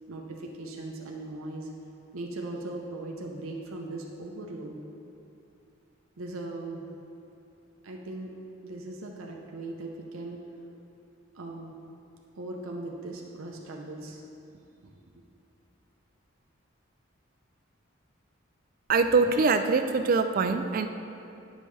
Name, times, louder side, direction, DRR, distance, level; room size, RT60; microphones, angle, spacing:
voice 1, 0.1-1.7 2.1-4.8 6.2-6.8 7.8-8.3 8.6-10.5 11.3-11.8 12.4-14.2, right 2 dB, 85° right, 0 dB, 0.6 m, -39 dB
voice 2, 18.9-20.9, right 4 dB, 45° right, 8 dB, 0.3 m, -23 dB
9.7 x 5.3 x 3.2 m, 2.6 s
head